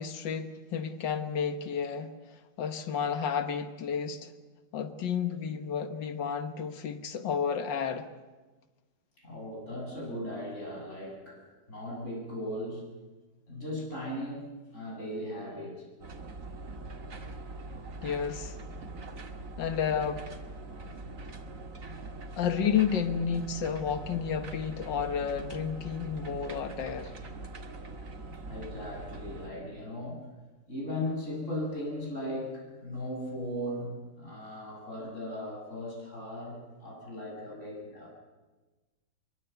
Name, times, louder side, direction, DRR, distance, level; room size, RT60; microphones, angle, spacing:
voice 1, 0.0-2.1 2.6-4.3 4.7-8.1 18.0-18.6 19.6-20.3 22.4-27.1, left 7 dB, 85° left, 2.0 m, -31 dB
voice 2, 9.2-11.4 11.7-12.8 13.5-14.5 14.7-15.8 28.4-30.3 30.7-38.1, left 1 dB, 40° left, 7.8 m, -37 dB
sound 1, 16.0-29.5, right 2 dB, 50° right, 2.3 m, -42 dB
24.0 x 23.0 x 8.1 m
omnidirectional pair, 1.9 m